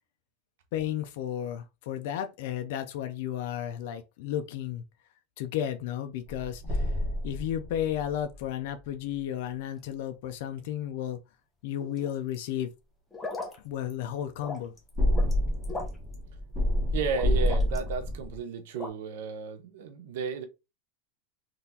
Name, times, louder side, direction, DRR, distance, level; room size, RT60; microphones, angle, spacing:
voice 1, 0.7-4.8 5.4-6.9 7.2-11.2 11.6-12.7 13.6-14.7, left 10 dB, 60° left, 0.4 m, -33 dB
sound 1, 6.3-8.5 15.0-18.4, left 1 dB, 20° right, 1.0 m, -28 dB
sound 2, 11.8-12.4 13.1-13.6 13.9-14.0 14.4-15.3 15.6-16.1 17.1-17.9 18.7-18.9, left 3 dB, 10° left, 0.7 m, -38 dB
voice 2, 16.9-20.4, right 6 dB, 75° right, 0.5 m, -33 dB
3.7 x 2.4 x 2.7 m
supercardioid pair, 165°, 0 cm